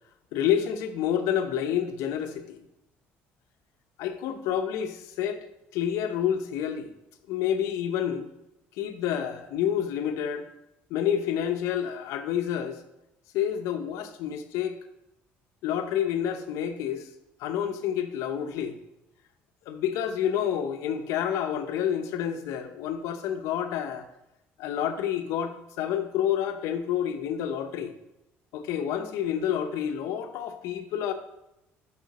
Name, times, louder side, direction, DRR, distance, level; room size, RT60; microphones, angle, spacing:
voice 1, 0.3-2.6 4.0-5.5 5.7-6.9 7.3-8.3 8.8-10.5 10.9-12.8 13.3-14.8 15.6-17.1 17.4-18.8 19.7-24.1 24.6-27.9 28.5-31.1, left 9 dB, 80° left, 8 dB, 0.6 m, -29 dB
6.4 x 5.6 x 4.0 m, 0.89 s
cardioid pair, 90°, 5 cm